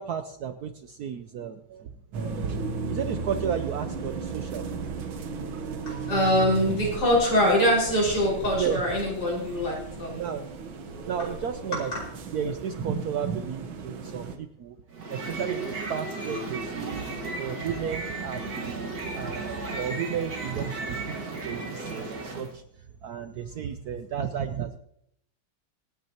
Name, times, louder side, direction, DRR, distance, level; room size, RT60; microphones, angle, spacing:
voice 1, 0.0-1.9 2.4-2.5 2.9-4.6 5.6-5.8 8.5-8.8 10.1-10.5 11.0-11.9 12.3-14.8 15.1-15.6 15.9-17.1 17.4-22.6 23.0-24.8, right 8 dB, 65° right, 8 dB, 1.0 m, -33 dB
sound 1, 2.1-14.4, right 5 dB, 90° right, 1.9 m, -35 dB
voice 2, 5.9-10.3 11.7-11.8, equal, 60° left, -4 dB, 5.8 m, -24 dB
sound 2, 14.9-22.5, right 3 dB, 50° right, 2.1 m, -34 dB
25.5 x 9.4 x 2.9 m, 0.71 s
omnidirectional pair, 2.1 m